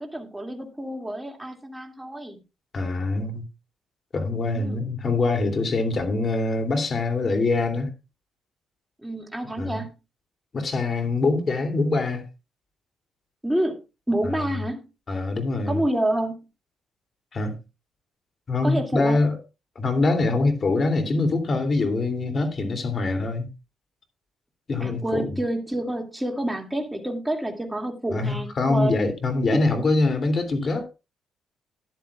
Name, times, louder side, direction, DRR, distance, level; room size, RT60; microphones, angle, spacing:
voice 1, 0.0-2.4 4.4-4.9 9.0-9.9 13.4-13.8 14.1-14.8 15.7-16.4 18.6-19.2 24.8-29.0 29.5-29.6, right 1 dB, 5° right, 2.3 m, -28 dB
voice 2, 2.7-3.5 4.1-7.9 9.6-9.8 10.5-12.2 14.2-14.5 15.1-15.8 17.3-17.6 18.5-19.4 19.7-23.5 24.7-25.4 28.1-30.9, left 3 dB, 40° left, 2.8 m, -24 dB
13.0 x 10.5 x 2.4 m
cardioid pair, 90°, 0 cm